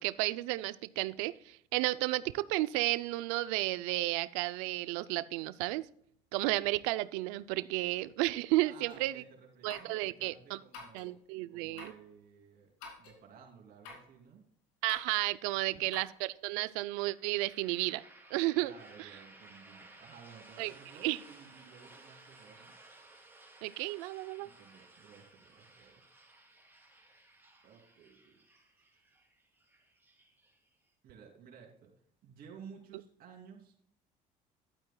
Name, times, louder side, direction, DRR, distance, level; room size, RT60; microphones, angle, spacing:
voice 1, 0.0-5.9 6.3-9.2 9.6-10.6 10.9-11.9 14.8-18.0 18.3-18.7 19.0-19.1 20.6-20.7 21.0-21.2 23.6-24.5, right 19 dB, 90° right, 17 dB, 0.4 m, -32 dB
voice 2, 8.6-11.1 11.5-14.5 15.7-15.8 18.6-22.8 24.4-26.0 27.6-29.2 31.0-31.9 32.2-33.7, right 6 dB, 65° right, 1 dB, 2.9 m, -55 dB
sound 1, 8.9-9.0 9.7-10.0 10.7-11.1 11.8-12.0 12.8-13.2 13.8-14.1 14.9-15.3 15.9-16.2, left 4 dB, 85° left, 2.7 m, -49 dB
sound 2, 17.1-30.9, right 2 dB, 10° right, 3.3 m, -58 dB
11.5 x 9.0 x 2.2 m, 0.64 s
supercardioid pair, 85°, 17 cm